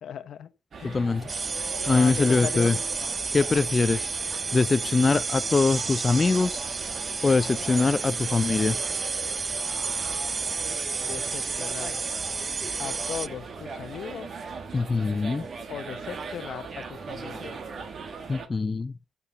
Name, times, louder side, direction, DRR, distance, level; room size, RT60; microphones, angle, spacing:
voice 1, 0.0-0.5 0.8-1.2 1.9-2.8 11.0-12.0 12.8-14.3 15.7-17.6, left 8 dB, 65° left, 1.0 m, -37 dB
sound 1, 0.7-18.5, right 4 dB, 50° right, 1.6 m, -39 dB
voice 2, 0.8-1.2 1.9-2.8 3.3-6.6 7.2-8.8 14.7-15.4 18.3-18.9, left 4 dB, 30° left, 0.4 m, -23 dB
sound 2, 1.3-13.3, right 4 dB, 35° right, 0.4 m, -31 dB
7.1 x 6.9 x 6.8 m
cardioid pair, 105°, 0 cm